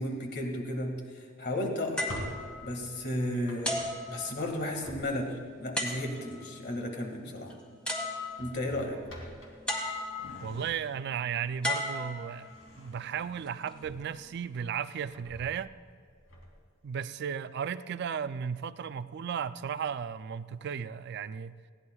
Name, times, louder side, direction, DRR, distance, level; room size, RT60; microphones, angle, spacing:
voice 1, 0.0-2.1 2.6-7.6 8.4-9.0, left 1 dB, 55° left, 1.9 m, -34 dB
Drawer open or close, 1.8-5.5 7.0-7.3 7.6-7.8 8.3-11.2 11.6-14.4 14.8-16.7, left 1 dB, 90° left, 2.8 m, -48 dB
sound 1, 2.0-3.2 3.6-4.8 5.8-6.5 7.5-7.6 7.9-8.7 9.7-10.5 11.6-12.7 13.5-13.7, left 1 dB, 5° left, 1.7 m, -35 dB
voice 2, 10.4-12.5 12.8-15.7 16.8-21.5, right 7 dB, 55° right, 0.4 m, -35 dB
20.0 x 16.0 x 2.3 m
head